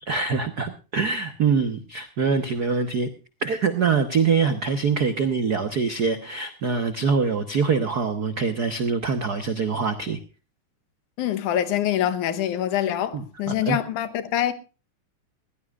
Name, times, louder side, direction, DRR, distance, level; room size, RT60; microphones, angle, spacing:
voice 1, 0.0-3.1 3.4-10.2 13.1-13.8, right 5 dB, 75° right, 0.8 m, -24 dB
voice 2, 11.2-14.5, left 11 dB, 80° left, 2.5 m, -25 dB
21.0 x 16.5 x 2.4 m
omnidirectional pair, 3.5 m